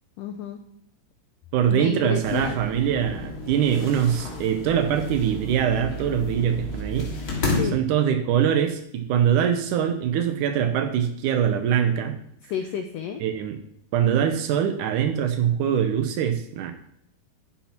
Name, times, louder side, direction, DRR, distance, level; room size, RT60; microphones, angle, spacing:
voice 1, 0.2-0.6 1.7-2.6 7.4-7.8 12.5-13.2, left 8 dB, 85° left, 6 dB, 1.8 m, -31 dB
voice 2, 1.5-7.1 7.7-12.1 13.2-13.6 13.9-16.7, right 9 dB, 85° right, 7 dB, 1.8 m, -23 dB
sound 1, 2.2-7.6, left 2 dB, 30° left, 3.2 m, -32 dB
11.5 x 10.5 x 4.5 m, 0.70 s
omnidirectional pair, 5.0 m